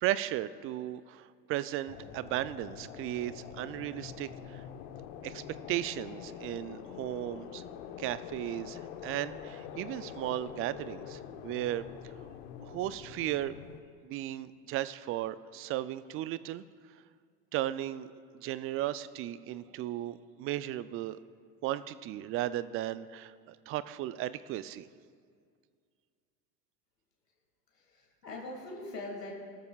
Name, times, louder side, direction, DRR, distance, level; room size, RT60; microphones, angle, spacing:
voice 1, 0.0-4.6 5.2-5.4 5.7-7.6 8.0-11.9 12.6-13.5 14.0-16.6 17.5-18.1 18.3-21.2 21.6-24.9, right 13 dB, 30° right, 16 dB, 0.4 m, -35 dB
sound 1, 1.9-13.8, left 8 dB, 60° left, 1.1 m, -45 dB
voice 2, 27.7-29.3, left 2 dB, 85° left, -1 dB, 2.3 m, -42 dB
19.5 x 13.0 x 2.4 m, 2.1 s
hypercardioid pair, 80°, 47 cm